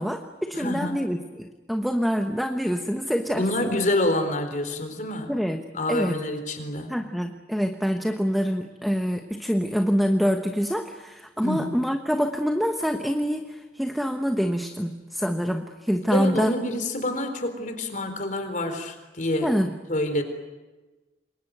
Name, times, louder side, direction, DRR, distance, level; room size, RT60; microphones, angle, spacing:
voice 1, 0.0-3.8 5.3-6.2 6.9-16.5 19.4-19.7, equal, ahead, 5 dB, 1.1 m, -26 dB
voice 2, 0.5-1.0 3.3-5.3 5.7-7.0 11.4-11.8 16.1-19.5 19.9-20.2, left 1 dB, 45° left, 7 dB, 4.3 m, -27 dB
27.5 x 23.0 x 9.2 m, 1.2 s
head